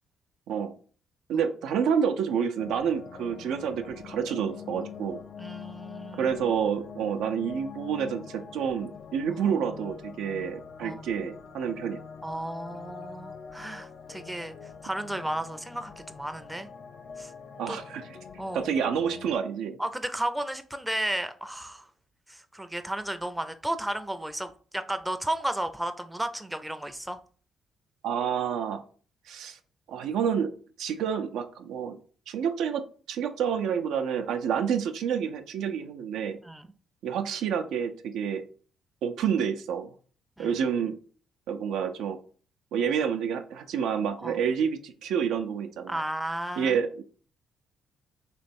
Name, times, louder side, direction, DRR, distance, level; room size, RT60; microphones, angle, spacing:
voice 1, 1.3-5.2 6.2-12.0 17.6-18.2 18.5-19.8 28.0-28.8 29.3-29.6 29.9-30.5 30.8-32.0 32.3-36.4 37.0-38.4 39.0-39.9 40.4-40.9 41.5-42.2 42.7-46.0 46.6-47.0, right 7 dB, 80° right, 0.5 m, -29 dB
sound 1, 2.6-19.4, left 7 dB, 60° left, 0.5 m, -44 dB
voice 2, 5.4-6.3 9.3-9.4 10.8-11.1 12.2-14.5 14.8-16.7 17.2-17.3 17.7-17.8 18.4-18.7 19.8-21.9 22.3-27.2 36.4-36.7 40.4-40.5 44.2-44.4 45.9-46.8, right 1 dB, 5° right, 0.5 m, -33 dB
3.1 x 3.0 x 4.2 m
supercardioid pair, 65°, 0 cm